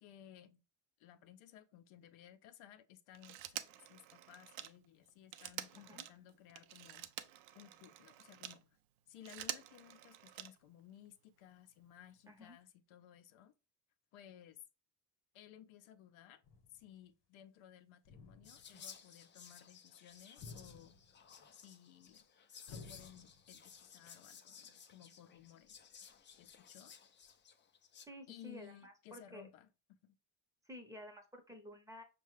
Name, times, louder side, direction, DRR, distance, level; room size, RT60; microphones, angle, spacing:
voice 1, 0.0-0.6 1.0-7.1 7.5-8.8 9.1-13.5 14.1-14.6 15.3-16.4 16.7-21.0 21.5-22.3 22.7-25.8 26.4-27.0 28.3-29.7 30.0-30.2, left 11 dB, 85° left, 0.6 m, -58 dB
Telephone, 3.1-8.6 9.1-10.8 12.1-12.2, right 12 dB, 80° right, 0.5 m, -48 dB
voice 2, 12.3-12.6 28.1-29.5 30.7-32.0, left 1 dB, 5° right, 0.7 m, -52 dB
sound 1, 16.4-16.9 18.0-18.8 20.4-21.3 22.7-23.6, left 4 dB, 65° left, 1.0 m, -54 dB
Whispering, 18.4-28.1, left 7 dB, 25° left, 0.3 m, -57 dB
5.4 x 2.3 x 3.1 m
cardioid pair, 100°, 47 cm